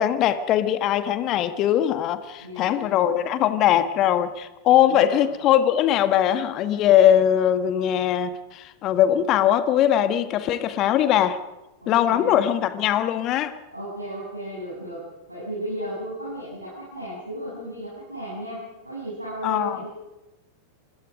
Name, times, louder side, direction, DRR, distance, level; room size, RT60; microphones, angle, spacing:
voice 1, 0.0-11.4 11.9-13.6 19.4-19.8, left 11 dB, 35° left, 1.5 m, -21 dB
voice 2, 2.4-2.9 4.8-5.3 11.8-12.5 13.7-15.0 15.3-19.9, right 1 dB, 85° right, 7.9 m, -35 dB
28.5 x 21.5 x 5.2 m
figure-of-eight pair, 90°, 0 cm